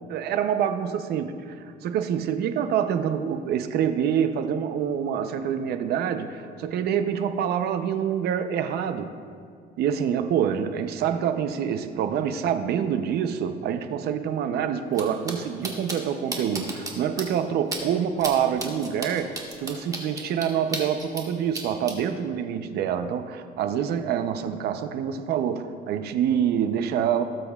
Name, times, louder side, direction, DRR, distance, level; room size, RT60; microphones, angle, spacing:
voice 1, 0.1-1.6 1.8-9.2 9.8-27.2, right 8 dB, 70° right, 9 dB, 0.6 m, -26 dB
sound 1, 14.9-15.0 15.3-15.4 15.6-16.0 16.3-16.9 17.2-17.3 17.7-17.8 18.2-18.3 18.6-21.2 21.5-21.9, right 3 dB, 20° right, 1.5 m, -32 dB
17.0 x 7.6 x 2.4 m, 2.1 s
cardioid pair, 110°, 17 cm